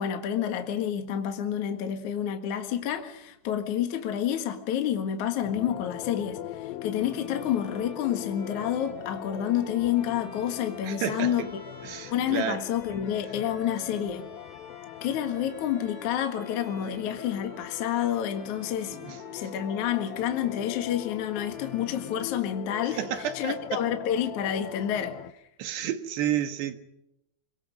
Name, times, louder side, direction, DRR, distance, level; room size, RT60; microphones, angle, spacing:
voice 1, 0.0-11.5 12.1-14.3 15.0-19.0 19.3-25.2, left 10 dB, 55° left, 2.5 m, -29 dB
sound 1, 5.4-25.3, left 14 dB, 80° left, 2.1 m, -41 dB
Bowed string instrument, 6.9-23.0, right 2 dB, 45° right, 6.1 m, -50 dB
voice 2, 10.8-11.3 11.8-12.6 19.0-19.2 23.0-24.1 25.6-26.8, right 10 dB, 70° right, 3.4 m, -31 dB
26.0 x 23.0 x 5.2 m
omnidirectional pair, 5.3 m